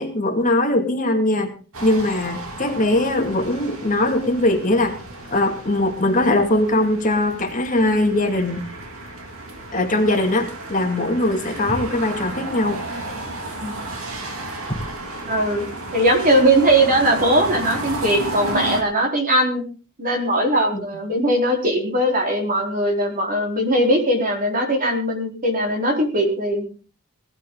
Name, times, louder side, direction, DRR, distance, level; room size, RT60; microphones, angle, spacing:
voice 1, 0.0-1.5 1.8-5.0 5.3-8.6 9.7-12.8 20.7-20.8, left 1 dB, 35° left, 3 dB, 2.2 m, -20 dB
sound 1, 1.7-18.8, right 2 dB, 65° right, 2.8 m, -33 dB
sound 2, 11.7-12.2 14.7-15.2, right 1 dB, 20° left, 3.1 m, -31 dB
voice 2, 15.3-15.6 15.9-19.6 20.0-26.6, right 1 dB, 40° right, 1 dB, 4.2 m, -20 dB
18.0 x 12.5 x 3.9 m, 0.37 s
head